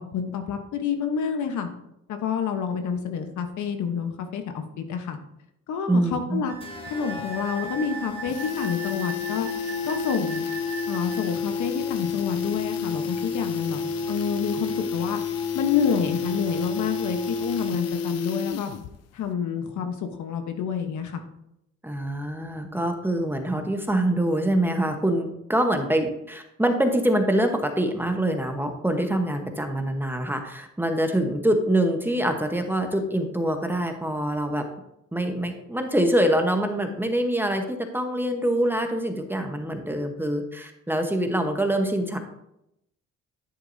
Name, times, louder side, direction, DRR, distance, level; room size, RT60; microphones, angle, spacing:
voice 1, 0.0-1.7 2.1-5.2 5.7-6.5 6.9-9.5 9.8-10.5 10.9-13.8 14.1-15.2 15.5-18.7 19.1-21.2, left 7 dB, 75° left, 6 dB, 1.1 m, -28 dB
voice 2, 5.9-6.4 21.8-34.6 35.1-42.2, right 1 dB, 5° right, 5 dB, 1.1 m, -25 dB
Wind instrument woodwind instrument, 6.5-11.2, right 5 dB, 50° right, 2.0 m, -38 dB
sound 1, 6.6-18.0, left 3 dB, 20° left, 1.1 m, -42 dB
sound 2, 7.4-7.5 7.8-7.9 8.1-19.0 19.2-19.3, left 5 dB, 60° left, 0.5 m, -30 dB
10.0 x 8.1 x 2.7 m, 0.83 s
cardioid pair, 90°, 30 cm